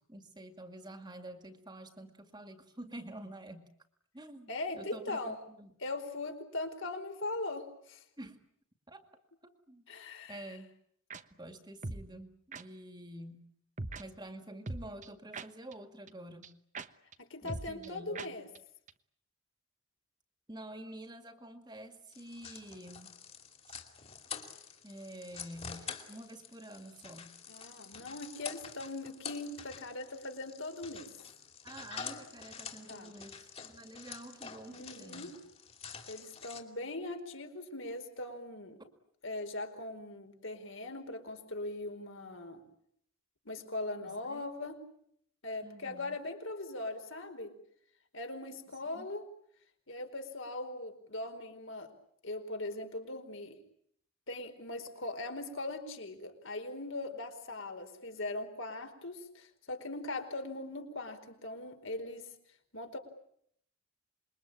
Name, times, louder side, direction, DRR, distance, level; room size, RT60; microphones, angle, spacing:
voice 1, 0.1-3.6 4.1-5.7 8.2-8.4 8.9-9.1 9.4-9.8 10.3-10.7 11.4-13.5 14.0-16.5 17.4-18.4 20.5-23.1 24.8-27.5 31.6-35.4 44.0-44.4 45.6-46.2 48.9-49.1, right 1 dB, 20° right, 8 dB, 2.1 m, -48 dB
voice 2, 4.5-5.4 5.8-8.0 9.9-10.6 17.2-18.5 27.5-31.1 32.9-33.1 34.7-35.3 36.1-38.8 39.2-42.6 43.4-44.8 45.4-47.5 48.1-49.3 49.9-51.9 52.2-53.6 54.3-62.3 62.7-63.0, left 2 dB, 65° left, 6 dB, 4.6 m, -40 dB
sound 1, 11.1-11.2 11.8-12.1 12.5-12.6 13.8-14.0 14.7-15.7 16.1-16.2 16.4-16.5 16.7-16.9 17.1-17.2 17.5-17.9 18.1-18.3 18.5-18.6 18.9-19.0, right 2 dB, 35° right, 1.1 m, -40 dB
sound 2, 22.1-36.6, left 6 dB, 30° left, 3.0 m, -47 dB
27.0 x 22.5 x 8.8 m, 0.68 s
head